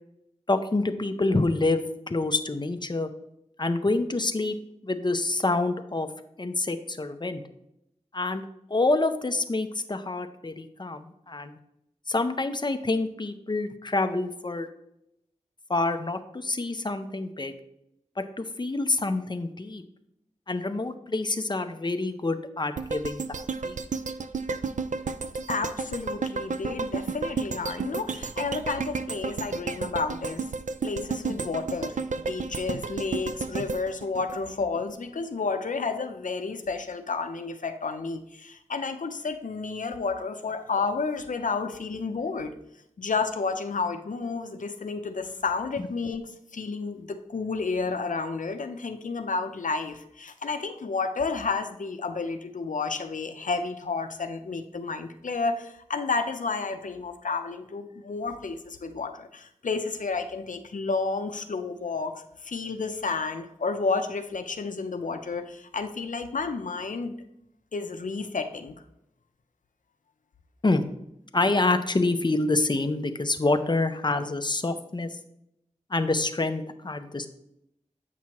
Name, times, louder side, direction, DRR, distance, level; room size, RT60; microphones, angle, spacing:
voice 1, 0.5-3.1 3.6-4.6 4.8-6.1 6.4-7.4 8.1-8.4 8.7-11.6 12.1-14.7 15.7-17.5 18.2-19.8 20.5-23.2 23.6-23.8 70.6-70.8 71.3-75.1 75.9-77.3, left 2 dB, 35° left, 8 dB, 0.6 m, -27 dB
sound 1, 22.8-35.0 35.4-35.5, right 4 dB, 75° right, 0.4 m, -32 dB
voice 2, 25.5-30.5 30.8-42.5 43.0-67.1 67.7-68.7, left 4 dB, 90° left, 7 dB, 0.5 m, -31 dB
8.3 x 6.0 x 3.0 m, 0.79 s
wide cardioid pair, 45°, 13 cm